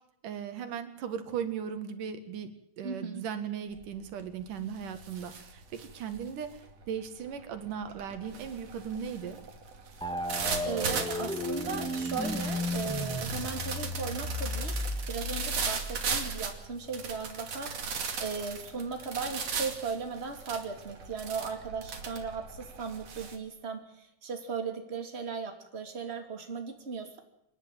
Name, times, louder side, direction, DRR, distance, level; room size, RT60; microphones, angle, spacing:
voice 1, 0.2-2.5 2.8-6.6 6.9-9.4, right 7 dB, 85° right, 9 dB, 3.4 m, -37 dB
voice 2, 2.8-3.2 10.6-14.8 15.1-27.2, right 5 dB, 20° right, 5 dB, 2.8 m, -37 dB
sound 1, 3.7-4.1 4.4-23.4, right 5 dB, 55° right, 3.5 m, -38 dB
sound 2, 10.0-16.7, left 1 dB, ahead, 1.4 m, -35 dB
28.0 x 11.0 x 9.0 m, 0.81 s
omnidirectional pair, 3.6 m